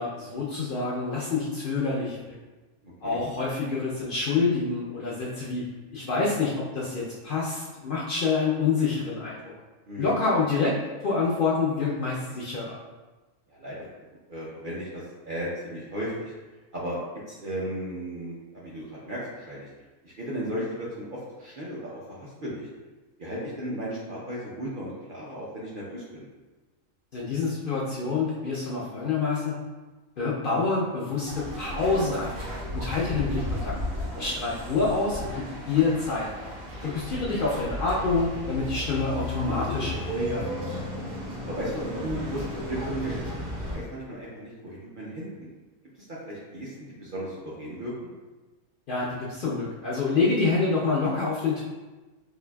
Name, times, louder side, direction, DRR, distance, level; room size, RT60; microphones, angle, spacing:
voice 1, 0.0-2.3 3.0-5.6 5.9-9.4 10.0-10.8 11.0-12.7 27.1-29.6 30.2-32.4 32.7-33.7 34.1-36.3 36.8-40.6 48.9-51.6, left 4 dB, 75° left, -6 dB, 0.4 m, -27 dB
voice 2, 2.8-3.2 9.9-10.2 13.5-13.8 14.3-16.3 16.7-17.0 17.3-19.7 20.0-22.7 23.2-26.3 36.8-36.9 41.4-43.2 43.7-45.3 46.1-48.1, right 1 dB, 60° right, -6 dB, 0.5 m, -35 dB
sound 1, 31.3-43.8, left 1 dB, 85° right, 1.7 m, -34 dB
4.7 x 2.5 x 2.2 m, 1.2 s
omnidirectional pair, 1.5 m